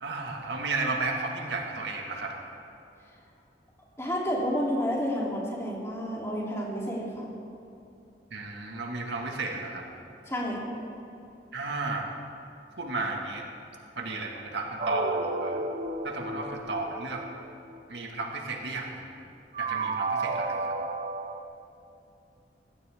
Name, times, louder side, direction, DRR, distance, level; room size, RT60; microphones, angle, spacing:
voice 1, 0.0-2.4 8.3-9.9 11.5-12.1 12.8-13.4 14.0-15.6 16.0-17.3 17.9-19.1 19.6-20.7, right 3 dB, 80° right, 1 dB, 2.0 m, -33 dB
voice 2, 4.0-7.3 10.3-10.6, equal, 15° left, -5 dB, 3.2 m, -30 dB
sound 1, 14.8-17.8 19.5-21.4, right 3 dB, 45° right, 0.8 m, -32 dB
20.5 x 15.5 x 3.7 m, 2.8 s
head